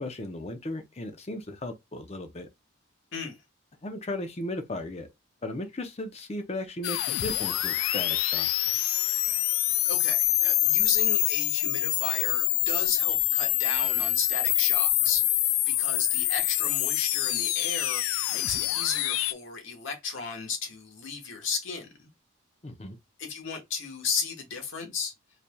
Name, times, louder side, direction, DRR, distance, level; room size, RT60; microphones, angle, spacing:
voice 1, 0.0-2.5 3.8-5.1 5.4-8.5 22.6-23.0, left 1 dB, 30° left, 0.6 m, -36 dB
sound 1, 6.8-19.3, left 15 dB, 85° left, 0.3 m, -26 dB
voice 2, 9.6-22.1 23.2-25.1, left 5 dB, 70° left, 1.3 m, -35 dB
4.1 x 3.3 x 2.2 m
head